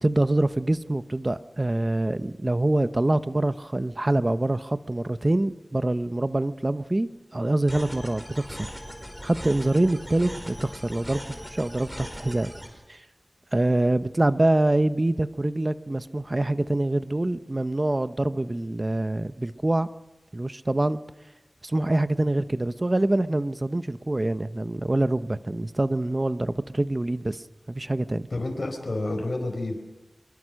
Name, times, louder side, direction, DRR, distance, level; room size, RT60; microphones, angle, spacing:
voice 1, 0.0-8.7 9.2-11.2 11.5-12.5 12.9-13.0 13.5-19.9 20.3-21.0 21.6-28.3, right 1 dB, 35° right, 12 dB, 0.9 m, -25 dB
sound 1, 7.7-12.7, equal, 5° right, 4.9 m, -39 dB
voice 2, 28.3-29.8, left 2 dB, 65° left, 3 dB, 4.6 m, -29 dB
25.0 x 22.5 x 6.5 m, 1.0 s
wide cardioid pair, 55°, 0 cm